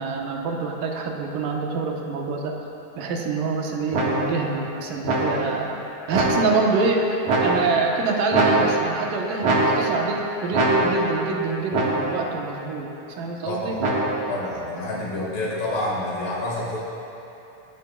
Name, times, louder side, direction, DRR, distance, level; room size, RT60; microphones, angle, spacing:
voice 1, 0.0-2.6 3.0-5.7 6.1-7.1 7.4-13.8, right 3 dB, 80° right, 0 dB, 2.9 m, -26 dB
sound 1, 3.9-4.5 5.1-5.6 6.1-6.8 7.3-7.9 8.3-9.1 9.4-10.1 10.5-11.2 11.7-12.3 13.8-14.4, right 2 dB, 60° right, 3.0 m, -23 dB
voice 2, 13.5-13.8 14.3-16.8, left 1 dB, 80° left, -5 dB, 3.8 m, -28 dB
26.0 x 12.5 x 2.4 m, 3.0 s
omnidirectional pair, 3.9 m